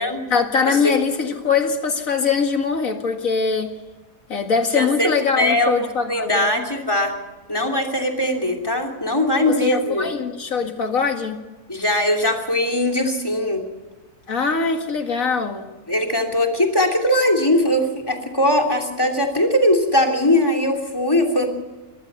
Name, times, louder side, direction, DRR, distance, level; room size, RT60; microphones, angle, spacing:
voice 1, 0.3-3.7 4.3-6.6 9.5-11.4 14.3-15.7, left 5 dB, 65° left, 5 dB, 2.3 m, -22 dB
voice 2, 4.7-5.1 5.4-7.1 7.5-10.1 11.7-13.6 15.9-21.5, left 1 dB, 15° left, 6 dB, 3.1 m, -20 dB
24.5 x 19.0 x 5.6 m, 1.3 s
omnidirectional pair, 1.6 m